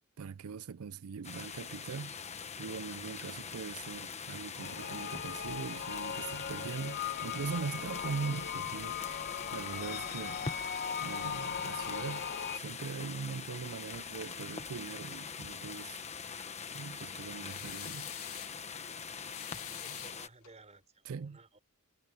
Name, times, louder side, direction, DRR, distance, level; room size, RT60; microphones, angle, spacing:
voice 1, 0.2-9.0 9.3-10.4 11.0-12.3 12.5-16.0 16.7-18.1 19.9-20.0 21.1-21.4, right 5 dB, 75° right, 0.5 m, -41 dB
sound 1, 1.2-20.3, left 6 dB, 30° left, 1.2 m, -43 dB
sound 2, 4.6-12.6, left 7 dB, 45° left, 1.1 m, -39 dB
sound 3, 17.5-18.6 19.3-20.6, left 13 dB, 70° left, 2.9 m, -46 dB
voice 2, 19.7-21.6, right 2 dB, 30° right, 4.0 m, -57 dB
head